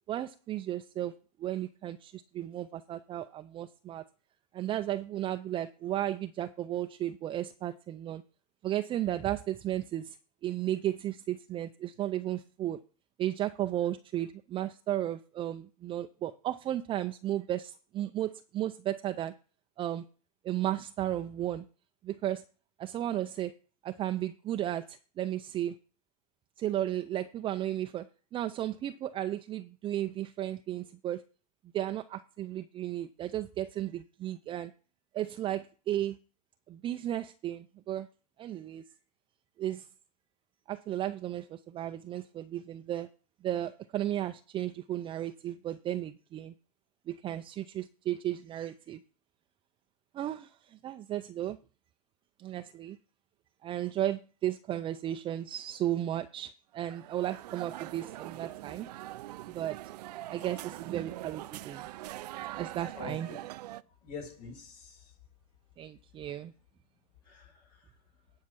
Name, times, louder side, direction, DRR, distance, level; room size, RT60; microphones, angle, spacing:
voice 1, 0.1-1.1 1.4-4.0 4.5-8.2 8.6-10.2 10.4-12.8 13.2-19.3 19.8-20.0 20.4-21.6 22.0-22.4 22.8-23.5 23.8-25.8 26.6-28.1 28.3-31.2 31.7-34.7 35.1-36.2 36.7-38.1 38.4-38.8 39.6-39.9 40.7-43.1 43.4-46.5 47.1-49.0 50.1-51.6 52.4-53.0 53.6-58.9 59.5-59.8 60.3-61.9 62.5-63.3 65.8-66.5, right 12 dB, 25° right, 0.5 m, -34 dB
sound 1, 56.8-63.8, right 15 dB, 85° right, 0.5 m, -43 dB
voice 2, 62.9-63.4 64.0-65.1 67.2-67.9, left 4 dB, 70° left, 5.8 m, -45 dB
10.0 x 5.6 x 6.2 m
supercardioid pair, 130°, 20 cm